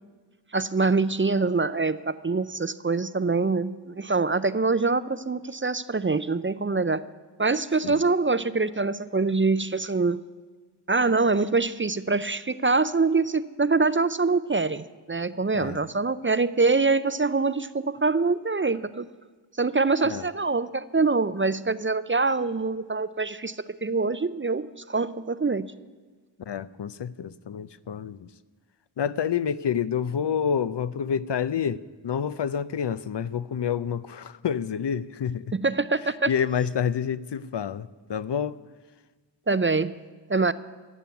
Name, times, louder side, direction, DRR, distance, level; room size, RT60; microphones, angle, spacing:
voice 1, 0.5-7.0 7.4-10.2 10.9-19.1 19.6-25.7 35.6-36.3 39.5-40.0 40.3-40.5, right 3 dB, 30° right, 15 dB, 0.5 m, -24 dB
voice 2, 26.5-28.3 29.0-35.5 36.3-38.6, left 7 dB, 65° left, 15 dB, 0.6 m, -28 dB
15.0 x 7.1 x 9.4 m, 1.4 s
wide cardioid pair, 40°, 45 cm